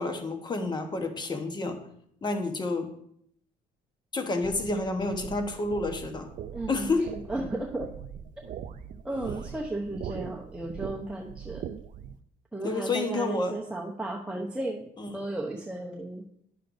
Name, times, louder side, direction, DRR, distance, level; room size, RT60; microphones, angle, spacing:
voice 1, 0.0-1.8 2.2-2.9 4.1-6.3 6.7-7.1 12.6-13.6 15.0-15.2, left 3 dB, 25° left, 6 dB, 1.1 m, -29 dB
sound 1, 4.4-12.1, right 8 dB, 50° right, 0.5 m, -41 dB
voice 2, 6.5-7.9 8.4-8.5 9.0-11.6 12.5-14.8 15.1-16.2, right 2 dB, 5° right, -2 dB, 0.8 m, -34 dB
10.5 x 6.5 x 2.6 m, 0.69 s
cardioid pair, 110°, 17 cm